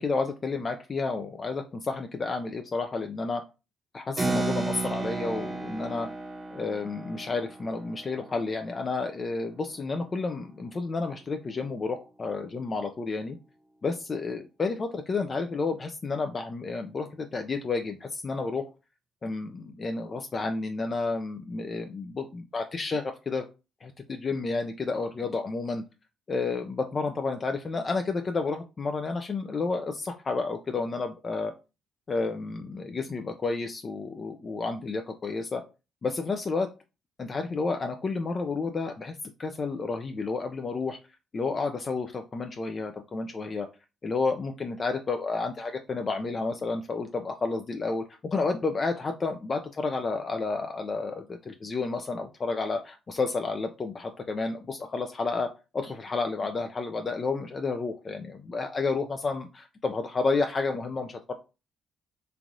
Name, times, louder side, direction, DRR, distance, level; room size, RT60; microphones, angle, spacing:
voice 1, 0.0-3.4 3.9-6.1 6.5-13.4 13.8-18.6 19.2-23.4 23.8-25.8 26.3-31.5 32.1-35.6 36.0-36.7 37.2-41.0 41.3-43.7 44.0-55.5 55.7-61.3, left 3 dB, 35° left, 5 dB, 0.3 m, -31 dB
Keyboard (musical), 4.2-10.2, right 2 dB, 30° right, 0.8 m, -34 dB
3.1 x 2.4 x 2.6 m, 0.29 s
cardioid pair, 90°, 0 cm